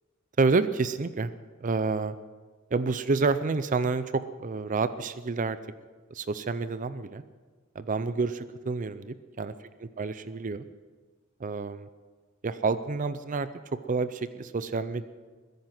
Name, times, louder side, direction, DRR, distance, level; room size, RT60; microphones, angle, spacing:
voice 1, 0.4-1.3 1.6-2.1 2.7-5.6 6.1-7.2 7.8-9.5 9.8-10.6 11.4-11.9 12.4-15.0, right 4 dB, 40° right, 13 dB, 0.5 m, -29 dB
22.0 x 10.5 x 6.0 m, 1.4 s
head